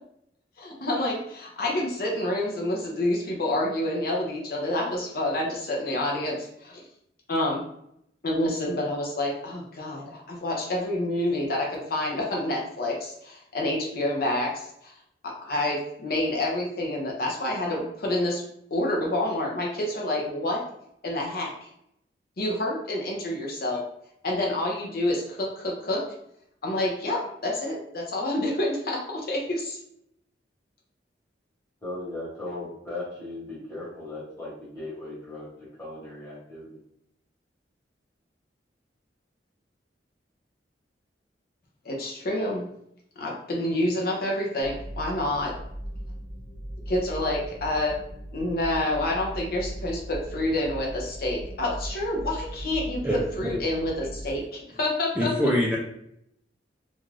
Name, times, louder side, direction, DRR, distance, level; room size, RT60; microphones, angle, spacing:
voice 1, 0.6-6.8 7.3-7.6 8.2-14.9 15.2-18.4 18.7-20.6 21.0-21.7 22.4-23.8 24.2-26.0 26.6-29.8 41.8-42.7 43.2-45.5 46.9-48.0 48.3-55.3, left 1 dB, 55° left, -2 dB, 0.6 m, -28 dB
voice 2, 31.8-35.5 35.8-36.8, left 2 dB, 15° left, -7 dB, 1.2 m, -37 dB
sound 1, 44.6-54.4, equal, 75° left, 1.3 m, -38 dB
voice 3, 55.2-55.8, equal, 5° right, -5 dB, 0.4 m, -23 dB
2.5 x 2.3 x 3.1 m, 0.75 s
head